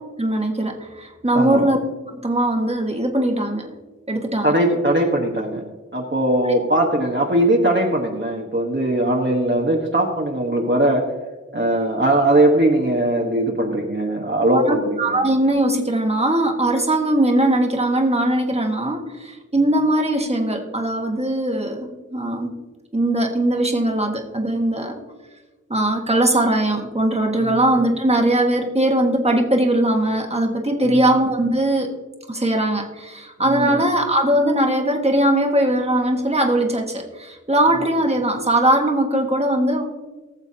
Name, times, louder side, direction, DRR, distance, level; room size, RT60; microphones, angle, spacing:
voice 1, 0.2-1.8 2.1-3.7 4.1-4.5 14.5-22.5 22.9-25.0 25.7-31.9 32.3-39.8, right 1 dB, 20° right, 2 dB, 1.5 m, -20 dB
voice 2, 1.3-1.6 4.4-5.6 5.9-11.0 11.5-15.2 27.4-27.6 30.9-31.0 33.4-33.8, right 1 dB, 40° right, -1 dB, 1.2 m, -20 dB
19.0 x 7.0 x 2.8 m, 1.2 s
wide cardioid pair, 55°, 30 cm